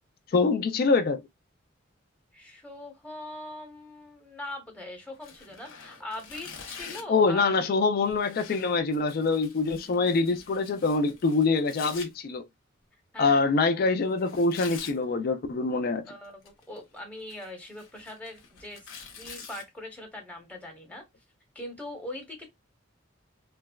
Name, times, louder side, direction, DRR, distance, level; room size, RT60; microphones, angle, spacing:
voice 1, 0.3-1.2 7.1-12.5 13.2-16.1, left 4 dB, 50° left, 0.3 m, -25 dB
voice 2, 2.3-7.5 13.1-13.4 16.1-21.0 21.5-22.5, left 1 dB, 5° left, 0.9 m, -41 dB
Tearing, 5.2-7.2 8.0-12.1 14.2-15.0 16.2-16.8 17.2-19.6, left 6 dB, 80° left, 0.7 m, -46 dB
3.3 x 2.1 x 2.2 m
head